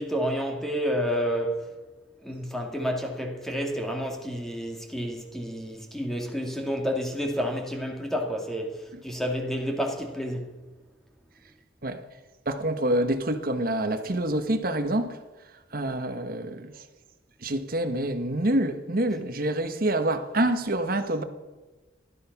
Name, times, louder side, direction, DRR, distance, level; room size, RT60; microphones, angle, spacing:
voice 1, 0.0-1.7 2.2-10.5, equal, ahead, 2.2 m, -30 dB
voice 2, 12.4-15.2 15.7-16.8 17.4-21.2, right 1 dB, 50° right, 1.4 m, -27 dB
16.0 x 12.0 x 6.0 m
head